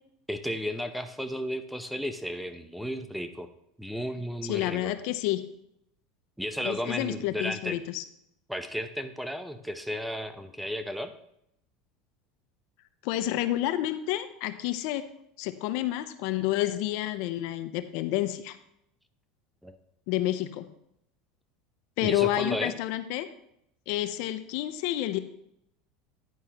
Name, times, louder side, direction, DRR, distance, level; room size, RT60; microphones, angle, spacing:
voice 1, 0.3-3.5 3.8-4.9 6.4-7.8 8.5-11.1 19.6-19.8 22.0-22.7, equal, ahead, 9 dB, 0.8 m, -34 dB
voice 2, 4.5-5.4 6.6-8.0 13.0-15.0 15.4-18.6 20.1-20.7 22.0-23.3 23.9-25.2, left 14 dB, 65° left, 11 dB, 0.7 m, -29 dB
10.5 x 9.4 x 3.0 m, 0.75 s
supercardioid pair, 105°, 0 cm